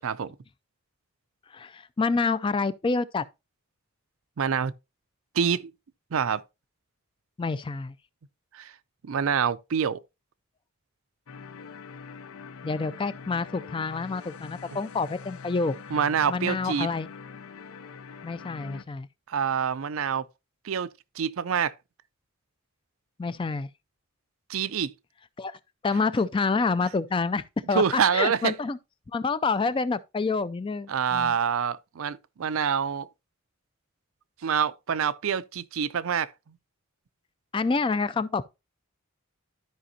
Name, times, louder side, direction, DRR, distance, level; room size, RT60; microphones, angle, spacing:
voice 1, 0.0-0.3 4.4-4.7 5.3-5.7 6.1-6.4 8.5-8.7 9.0-10.0 15.9-16.9 19.3-20.3 20.6-20.9 21.2-21.7 24.5-24.9 27.7-28.5 30.9-33.1 34.4-36.3, right 7 dB, 75° right, 0.5 m, -26 dB
voice 2, 1.5-3.2 7.4-7.9 12.6-15.8 16.3-17.1 18.2-19.1 23.2-23.7 25.4-25.6 25.8-27.8 28.1-28.8 29.1-31.3 37.5-38.4, left 4 dB, 25° left, 0.3 m, -27 dB
sound 1, 11.3-18.8, left 5 dB, 80° left, 0.5 m, -43 dB
12.5 x 5.1 x 2.7 m
head